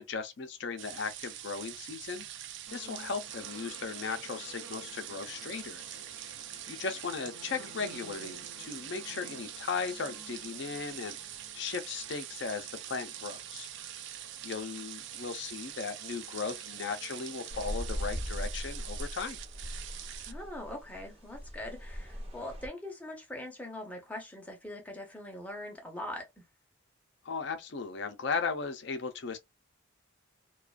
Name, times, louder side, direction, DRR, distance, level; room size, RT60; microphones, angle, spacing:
voice 1, 0.0-2.2 2.7-5.8 6.7-11.2 11.5-13.7 14.4-19.4 27.2-29.4, left 5 dB, 55° left, 0.5 m, -37 dB
sound 1, 0.8-20.3, right 11 dB, 55° right, 0.3 m, -44 dB
sound 2, 2.7-18.5, right 3 dB, 75° right, 0.7 m, -53 dB
sound 3, 17.5-22.7, equal, 30° right, 0.7 m, -39 dB
voice 2, 20.2-26.4, left 1 dB, 5° left, 0.6 m, -42 dB
2.4 x 2.2 x 2.3 m
head